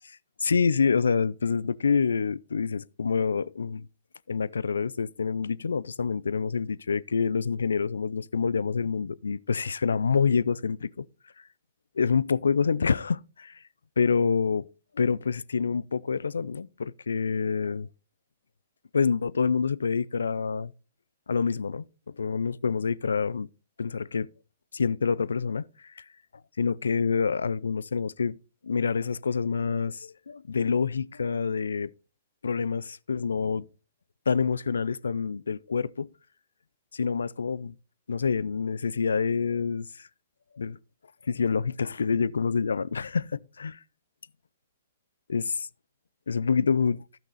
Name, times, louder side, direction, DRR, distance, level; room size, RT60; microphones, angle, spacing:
voice 1, 0.4-3.9 4.3-11.1 12.0-13.6 14.0-14.7 14.9-17.9 18.9-20.7 21.3-21.8 22.2-23.5 23.8-24.3 24.7-25.7 26.0-26.1 26.6-28.4 28.6-31.9 32.4-33.7 34.3-36.1 36.9-37.8 38.1-39.8 40.6-40.8 41.2-43.8 45.3-45.7 46.3-47.0, left 5 dB, 85° left, 0.4 m, -27 dB
12.0 x 6.0 x 3.9 m
hypercardioid pair, 125°, 0 cm